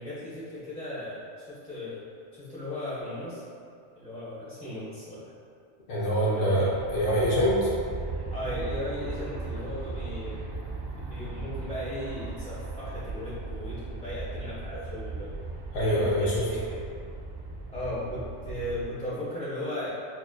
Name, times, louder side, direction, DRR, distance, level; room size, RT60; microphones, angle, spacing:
voice 1, 0.0-2.0 2.3-3.4 4.0-5.3 6.3-6.7 8.3-10.4 10.9-15.3 15.8-16.8 17.7-19.9, left 1 dB, 5° left, -12 dB, 0.5 m, -36 dB
voice 2, 5.9-7.7 15.7-16.4, equal, 85° left, -8 dB, 1.1 m, -25 dB
Aircraft, 6.7-18.9, right 3 dB, 55° right, 0.5 m, -37 dB
5.9 x 2.4 x 2.2 m, 2.4 s
omnidirectional pair, 1.2 m